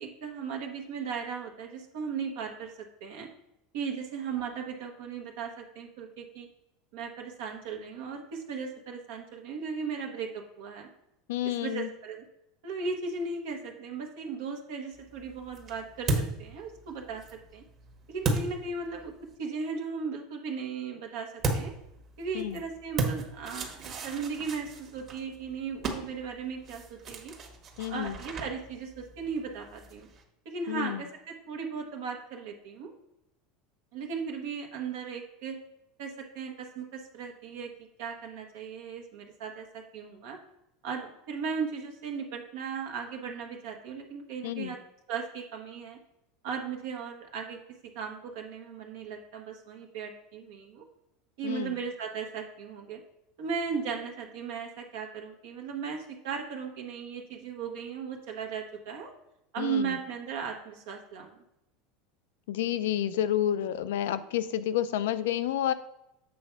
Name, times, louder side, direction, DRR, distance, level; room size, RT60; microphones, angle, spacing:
voice 1, 0.0-3.3 3.7-6.5 6.9-10.9 11.4-12.2 12.6-17.2 17.5-17.6 18.1-19.1 19.4-21.7 22.2-27.3 27.9-30.1 30.4-32.9 33.9-35.6 36.0-37.7 38.0-40.4 40.8-44.8 45.1-46.0 46.4-47.6 47.9-50.8 51.4-53.0 53.4-59.1 59.5-61.4, right 5 dB, 75° right, 2 dB, 1.1 m, -37 dB
voice 2, 11.3-11.9 22.3-22.6 27.8-28.2 30.7-31.0 44.4-44.7 51.4-51.7 59.6-60.0 62.5-65.7, left 11 dB, 85° left, 13 dB, 0.5 m, -30 dB
sound 1, 14.9-19.3 21.4-30.2, right 3 dB, 40° right, 1.3 m, -36 dB
7.6 x 3.4 x 5.8 m, 0.85 s
supercardioid pair, 120°, 0 cm